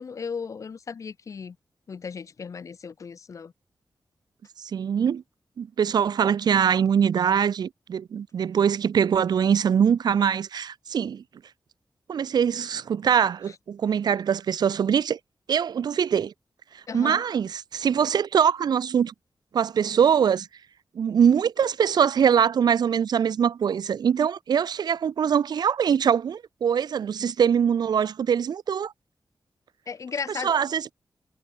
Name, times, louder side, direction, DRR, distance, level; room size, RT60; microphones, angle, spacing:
voice 1, 0.0-1.6 1.9-3.5 16.9-17.2 29.9-30.6, left 5 dB, 50° left, 0.5 m, -35 dB
voice 2, 4.6-5.2 5.6-11.2 12.1-15.2 15.5-16.3 16.7-19.1 19.5-20.5 20.9-28.9 30.4-30.9, right 7 dB, 85° right, 0.6 m, -23 dB
wide cardioid pair, 140°, 7 cm